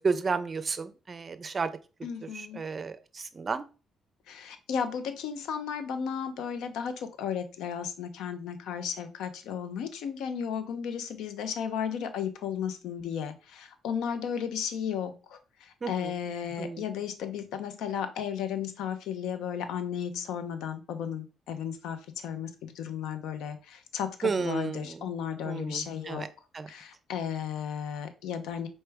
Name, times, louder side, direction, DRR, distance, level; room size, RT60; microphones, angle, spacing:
voice 1, 0.0-1.7 2.3-3.6 15.8-16.1 16.6-16.9 24.2-25.1 25.4-26.3 26.5-26.7, right 4 dB, 35° right, 13 dB, 0.4 m, -32 dB
voice 2, 2.0-2.6 4.3-15.4 15.9-22.0 22.2-22.5 22.8-26.3 26.7-28.7, left 8 dB, 90° left, 9 dB, 0.6 m, -34 dB
4.2 x 3.3 x 3.4 m, 0.33 s
cardioid pair, 90°, 0 cm